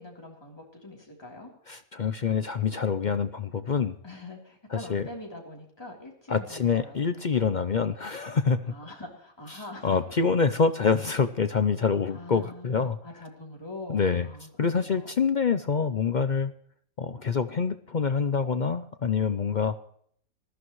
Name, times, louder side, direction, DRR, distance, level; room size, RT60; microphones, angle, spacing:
voice 1, 0.0-1.5 4.0-7.1 8.7-10.0 12.1-15.1, left 2 dB, 15° left, -1 dB, 3.4 m, -43 dB
voice 2, 1.7-4.0 4.7-5.0 6.3-8.7 9.5-13.0 13.9-14.3 14.6-16.5 17.0-19.8, left 5 dB, 50° left, 11 dB, 0.5 m, -26 dB
19.5 x 13.5 x 3.1 m, 0.62 s
omnidirectional pair, 1.5 m